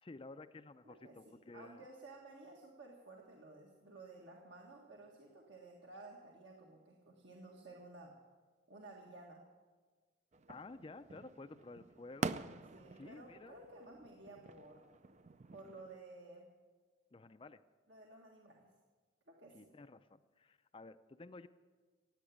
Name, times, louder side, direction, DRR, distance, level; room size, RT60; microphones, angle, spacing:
voice 1, 0.0-1.9 10.5-12.4 13.0-13.6 17.1-17.6 19.5-21.5, left 3 dB, 30° left, 11 dB, 0.4 m, -53 dB
voice 2, 0.8-8.1 8.7-9.4 12.7-14.8 15.5-16.5 17.9-18.7 19.3-19.7, right 2 dB, 70° right, -1 dB, 1.7 m, -55 dB
sound 1, 10.3-16.0, right 4 dB, 35° right, 0.5 m, -46 dB
16.5 x 9.0 x 8.5 m, 1.4 s
head